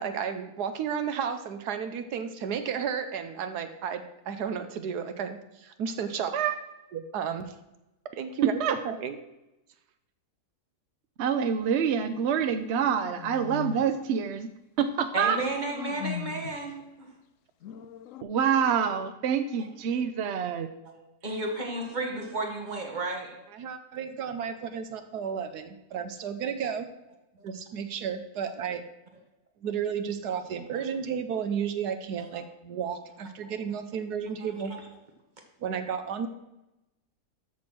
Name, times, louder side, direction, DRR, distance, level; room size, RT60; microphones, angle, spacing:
voice 1, 0.0-6.3 6.9-7.5 8.2-8.6 8.8-9.1 23.5-26.9 27.4-28.8 29.6-34.7 35.6-36.3, right 7 dB, 80° right, 9 dB, 1.3 m, -33 dB
voice 2, 11.2-14.5 14.8-15.4 18.2-20.7, right 7 dB, 60° right, 9 dB, 0.7 m, -26 dB
sound 1, 12.4-14.0 15.2-16.7 17.6-18.2, left 8 dB, 65° left, 0.9 m, -39 dB
voice 3, 15.1-17.1 20.9-23.4 33.4-33.5 34.7-34.8, right 2 dB, 30° right, 2 dB, 1.8 m, -33 dB
13.5 x 4.5 x 6.0 m, 0.94 s
omnidirectional pair, 1.7 m